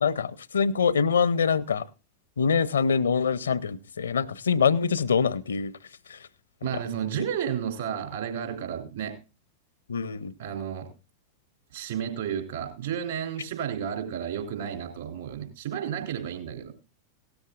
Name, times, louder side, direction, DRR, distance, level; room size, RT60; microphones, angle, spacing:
voice 1, 0.0-1.8 2.4-5.7 9.9-10.3, left 6 dB, 70° left, 0.5 m, -24 dB
voice 2, 6.6-9.1 10.4-10.9 11.7-16.7, right 8 dB, 60° right, 3.2 m, -32 dB
17.0 x 13.0 x 2.4 m
figure-of-eight pair, 90°, 0 cm